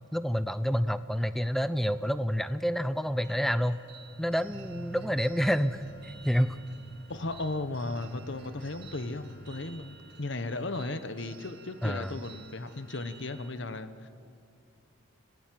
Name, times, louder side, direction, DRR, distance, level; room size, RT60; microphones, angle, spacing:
voice 1, 0.1-3.8 4.2-6.6 11.8-12.2, equal, ahead, 13 dB, 0.5 m, -28 dB
sound 1, 3.2-13.5, right 6 dB, 50° right, 1.7 m, -54 dB
sound 2, 3.7-10.3, right 1 dB, 80° left, 6.0 m, -52 dB
sound 3, 4.5-7.2, right 2 dB, 75° right, 1.4 m, -47 dB
voice 2, 7.1-14.1, left 2 dB, 55° left, 11 dB, 1.0 m, -36 dB
26.5 x 17.5 x 7.7 m, 2.5 s
head